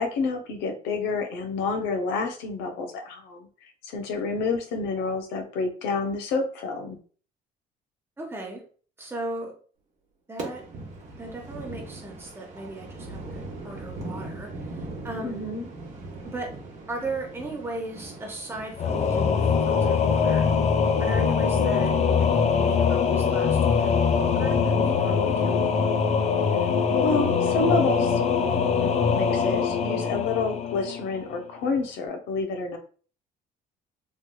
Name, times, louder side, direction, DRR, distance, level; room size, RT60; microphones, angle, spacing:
voice 1, 0.0-3.5 3.8-7.0 15.2-15.7 27.0-28.2 28.8-32.8, left 4 dB, 90° left, 4 dB, 0.7 m, -28 dB
voice 2, 8.2-8.6 9.0-9.5 10.3-10.6 11.1-15.4 16.2-16.5 16.9-20.5 21.0-25.6, right 2 dB, 15° right, 0 dB, 1.0 m, -37 dB
sound 1, 10.4-19.7, right 2 dB, 45° right, 1.0 m, -40 dB
Singing / Musical instrument, 18.8-31.3, left 6 dB, 40° left, 0.4 m, -23 dB
3.2 x 2.9 x 2.2 m, 0.41 s
cardioid pair, 110°, 17 cm